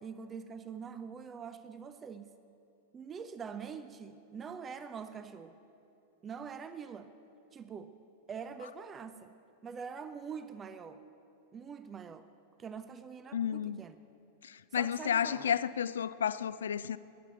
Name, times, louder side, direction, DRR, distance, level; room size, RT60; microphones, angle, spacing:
voice 1, 0.0-2.3 2.9-5.6 6.2-7.1 7.5-8.0 8.3-9.3 9.6-11.0 11.5-12.3 12.6-14.0 14.7-15.5, right 6 dB, 20° right, 0.5 m, -44 dB
voice 2, 13.3-13.8 14.4-17.0, left 8 dB, 65° left, 0.4 m, -32 dB
15.0 x 10.5 x 7.6 m
figure-of-eight pair, 90°, 0 cm